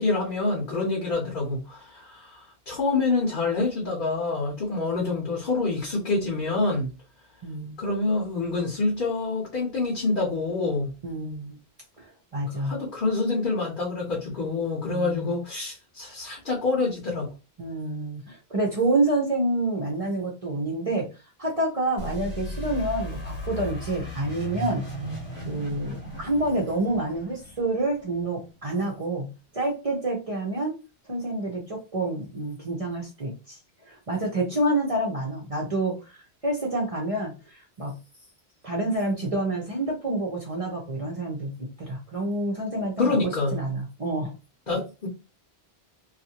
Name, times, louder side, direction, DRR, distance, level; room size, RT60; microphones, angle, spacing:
voice 1, 0.0-6.9 7.8-10.9 12.6-17.3 43.0-43.6 44.7-45.1, left 3 dB, 55° left, 0.9 m, -27 dB
voice 2, 7.4-7.8 11.0-11.6 12.0-12.1 12.3-12.7 14.9-15.3 17.6-21.1 21.4-24.9 25.4-29.3 29.5-30.8 31.1-33.6 33.9-37.9 38.6-44.3, right 2 dB, 40° right, 0.6 m, -28 dB
sound 1, 22.0-28.6, equal, 75° left, 1.2 m, -36 dB
2.6 x 2.4 x 2.8 m
omnidirectional pair, 1.1 m